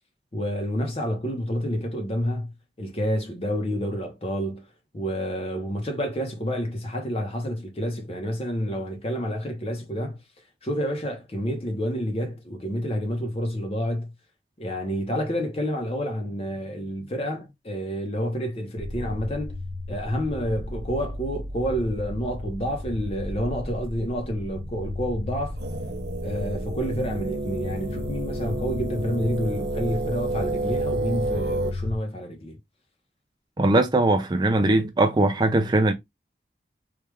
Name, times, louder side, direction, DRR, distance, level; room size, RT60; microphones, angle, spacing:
voice 1, 0.3-4.6 4.9-10.2 10.6-14.1 14.6-19.6 19.9-25.6 26.2-32.6, equal, 35° left, 0.9 m, -29 dB
sound 1, 18.8-32.0, left 1 dB, 75° left, 0.7 m, -34 dB
sound 2, 25.5-31.7, right 2 dB, 75° right, 0.6 m, -30 dB
voice 2, 33.6-35.9, right 2 dB, 25° right, 0.4 m, -20 dB
3.3 x 2.4 x 3.3 m
head